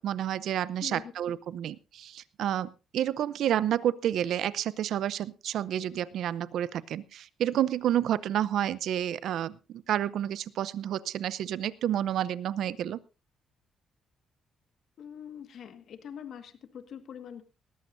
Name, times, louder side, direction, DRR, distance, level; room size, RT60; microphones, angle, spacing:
voice 1, 0.0-13.0, right 11 dB, 75° right, 18 dB, 0.6 m, -30 dB
voice 2, 0.8-1.1 15.0-17.4, left 8 dB, 65° left, 9 dB, 1.7 m, -43 dB
19.5 x 14.5 x 2.6 m, 0.30 s
cardioid pair, 90°, 0 cm